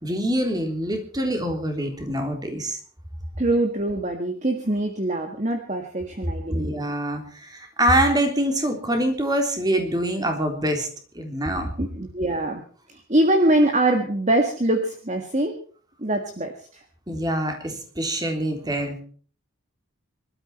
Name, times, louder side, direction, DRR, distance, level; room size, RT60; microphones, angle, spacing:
voice 1, 0.0-2.8 6.5-10.9 11.1-11.7 17.1-19.0, right 1 dB, 20° right, 4 dB, 3.5 m, -25 dB
voice 2, 3.4-6.8 11.8-12.6 12.9-15.6 16.0-16.8, right 1 dB, 35° right, 5 dB, 1.8 m, -23 dB
24.5 x 13.0 x 4.4 m, 0.44 s
head